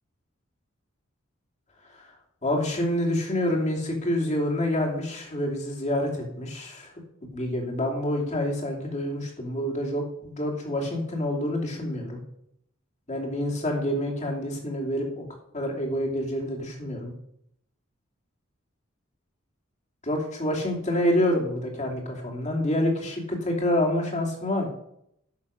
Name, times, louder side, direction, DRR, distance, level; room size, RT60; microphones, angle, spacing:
voice 1, 2.4-6.9 7.3-12.2 13.1-15.2 15.5-17.1 20.0-24.7, left 1 dB, 35° left, 0 dB, 2.8 m, -27 dB
11.0 x 6.3 x 6.4 m, 0.74 s
head